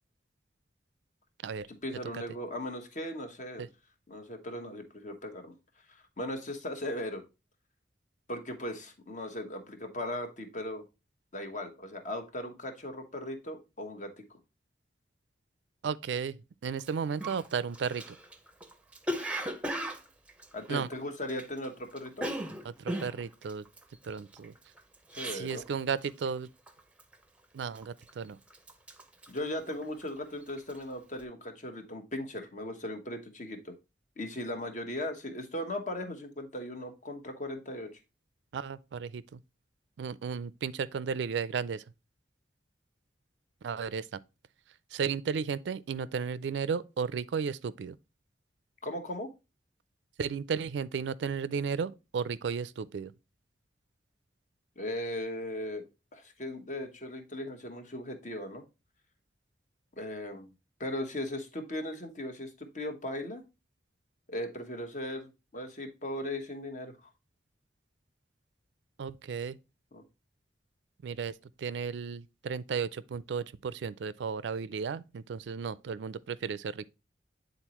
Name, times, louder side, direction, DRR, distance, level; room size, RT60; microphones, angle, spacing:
voice 1, 1.8-3.7 4.1-5.5 5.9-7.2 8.3-10.8 11.3-14.4 20.5-22.2 25.1-25.6 29.3-33.7 34.2-37.9 48.8-49.3 54.8-55.8 56.1-58.6 60.0-60.5 60.8-63.4 64.3-67.1 69.9-70.0, left 1 dB, 45° left, 1.1 m, -38 dB
voice 2, 15.8-16.4 16.6-18.2 20.7-20.9 22.6-23.6 24.0-24.5 25.3-26.5 27.5-28.4 38.5-39.4 40.0-41.8 43.6-44.2 44.9-48.0 50.2-53.1 69.0-69.6 71.0-76.9, right 6 dB, 75° right, 0.4 m, -34 dB
Cough, 16.8-16.9 17.2-21.7 21.9-25.7 26.0-26.4 26.7-27.1 27.6-28.2 28.5-30.2 30.5-30.8, right 1 dB, 5° right, 0.6 m, -37 dB
8.9 x 4.0 x 2.9 m
head